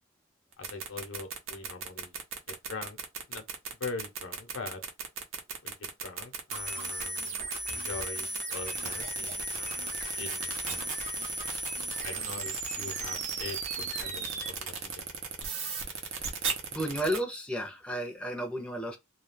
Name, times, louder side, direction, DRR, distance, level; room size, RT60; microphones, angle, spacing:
sound 1, 0.5-17.2, right 6 dB, 85° right, 0.7 m, -36 dB
voice 1, 0.6-2.2 2.5-3.0 3.3-3.4 3.8-4.8 5.6-7.4 7.7-11.0 12.0-15.0, left 3 dB, 75° left, 0.7 m, -42 dB
sound 2, 6.5-14.5, right 2 dB, 40° right, 0.7 m, -36 dB
voice 2, 16.7-19.0, equal, 5° left, 0.6 m, -32 dB
2.3 x 2.3 x 3.2 m
head